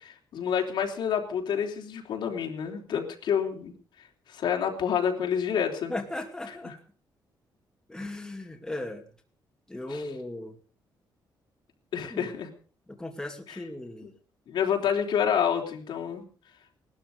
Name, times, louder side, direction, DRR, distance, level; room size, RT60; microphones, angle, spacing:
voice 1, 0.0-3.7 4.3-5.9 6.6-6.7 9.9-10.0 11.9-12.5 13.5-13.6 14.5-16.2, left 8 dB, 70° left, 2 dB, 3.5 m, -28 dB
voice 2, 5.9-6.8 7.9-9.0 9.7-10.6 12.1-12.3 12.9-14.1, left 2 dB, 10° left, 2 dB, 2.4 m, -37 dB
19.0 x 12.5 x 5.3 m, 0.41 s
cardioid pair, 150°, 8 cm